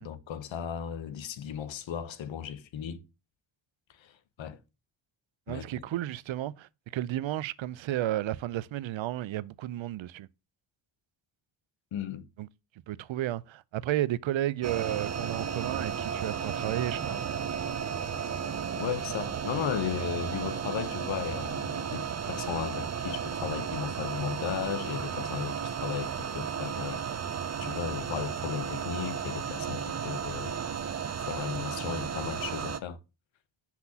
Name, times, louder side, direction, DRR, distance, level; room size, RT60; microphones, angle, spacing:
voice 1, 0.0-3.0 4.0-4.6 5.5-5.9 11.9-12.3 18.8-27.0 27.6-30.6 31.2-33.0, left 9 dB, 75° left, 0.9 m, -36 dB
voice 2, 5.5-10.3 12.4-12.5 12.9-17.2, right 13 dB, 80° right, 0.6 m, -32 dB
sound 1, 14.6-32.8, right 7 dB, 35° right, 0.6 m, -34 dB
5.9 x 5.9 x 2.8 m
wide cardioid pair, 125°, 46 cm